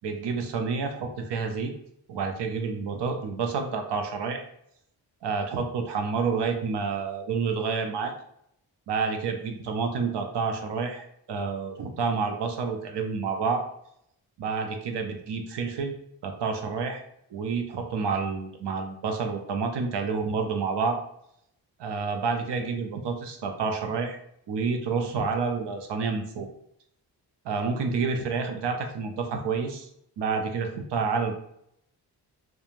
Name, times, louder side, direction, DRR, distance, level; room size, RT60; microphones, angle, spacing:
voice 1, 0.0-1.7 2.1-4.4 5.2-8.1 8.9-13.6 14.4-15.9 16.2-17.0 17.3-21.0 21.8-24.2 24.5-26.5 27.4-29.9 30.2-31.3, right 5 dB, 75° right, 4 dB, 0.6 m, -29 dB
2.9 x 2.2 x 2.5 m, 0.73 s
wide cardioid pair, 95°, 42 cm